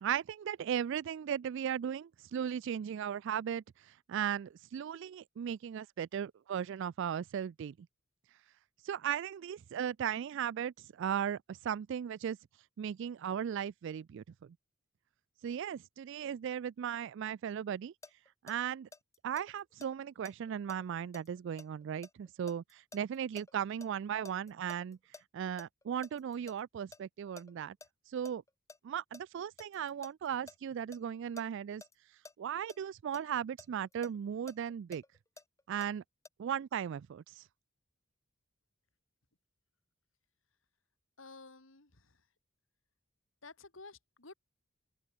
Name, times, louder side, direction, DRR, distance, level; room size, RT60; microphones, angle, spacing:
voice 1, 0.0-7.7 8.8-12.4 12.8-14.6 15.4-17.9 18.4-18.9 19.2-25.0 25.3-27.8 28.1-28.4 28.8-31.8 32.4-35.0 35.7-36.0 36.4-37.4, right 8 dB, 65° right, 0.3 m, -37 dB
sound 1, 18.0-23.9 24.2-26.6 26.9-27.0 27.4-27.9 28.2-31.4 31.8-31.9 32.2-32.3 32.7-32.8 33.1-35.9 36.3-36.4, left 3 dB, 15° left, 1.2 m, -53 dB
voice 2, 41.2-42.2 43.4-44.3, left 3 dB, 70° left, 2.8 m, -52 dB
head